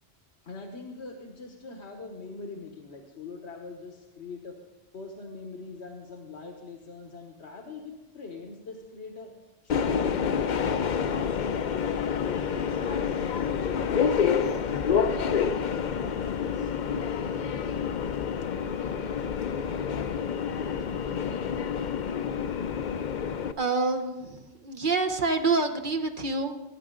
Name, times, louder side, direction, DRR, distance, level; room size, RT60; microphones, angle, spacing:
voice 1, 0.4-4.5 4.9-9.3 9.6-14.8 15.1-16.7, left 4 dB, 85° left, 2 dB, 1.5 m, -42 dB
Subway metro underground, 9.7-23.5, left 7 dB, 55° left, 0.6 m, -28 dB
voice 2, 23.6-26.6, right 3 dB, 50° right, 6 dB, 1.0 m, -27 dB
20.5 x 9.5 x 3.8 m, 1.1 s
omnidirectional pair, 1.1 m